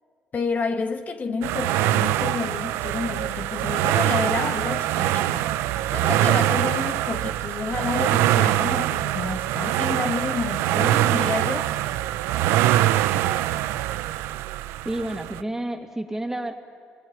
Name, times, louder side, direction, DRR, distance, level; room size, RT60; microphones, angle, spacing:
voice 1, 0.3-5.5 5.9-11.9, left 4 dB, 40° left, 1.4 m, -30 dB
sound 1, 1.4-15.4, right 14 dB, 85° right, 0.6 m, -23 dB
voice 2, 14.8-16.5, right 1 dB, 10° right, 2.4 m, -30 dB
25.5 x 22.0 x 8.9 m
cardioid pair, 85°, 4 cm